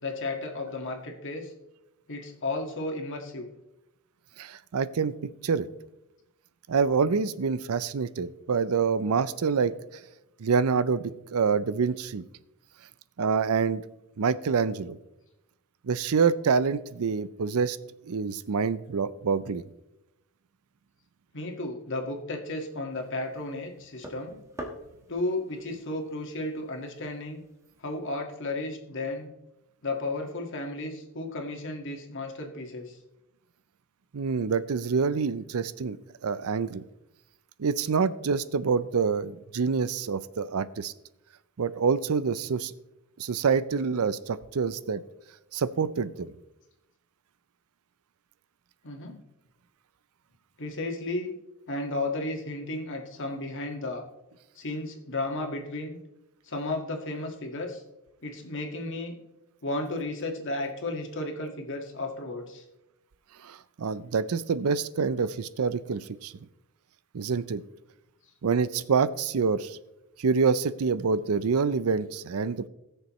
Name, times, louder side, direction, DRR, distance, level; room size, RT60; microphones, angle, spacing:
voice 1, 0.0-1.5 2.1-3.5 21.3-24.4 25.1-27.4 27.8-29.3 29.8-33.0 48.8-49.2 50.6-51.3 51.7-54.1 54.6-56.0 56.5-57.8 58.2-59.1 59.6-62.6, left 2 dB, 60° left, 2 dB, 1.8 m, -33 dB
voice 2, 4.4-5.1 5.4-5.7 6.7-10.0 10.4-12.2 13.2-13.8 14.2-15.0 15.8-17.8 18.1-19.6 34.1-36.0 36.2-36.8 37.6-40.9 41.6-42.7 43.2-45.0 45.5-46.3 63.4-66.3 67.1-67.6 68.4-69.8 70.2-72.7, right 5 dB, 70° right, 16 dB, 0.5 m, -26 dB
sound 1, 22.9-28.0, equal, 15° right, 1.4 m, -47 dB
20.0 x 6.7 x 3.1 m, 0.92 s
head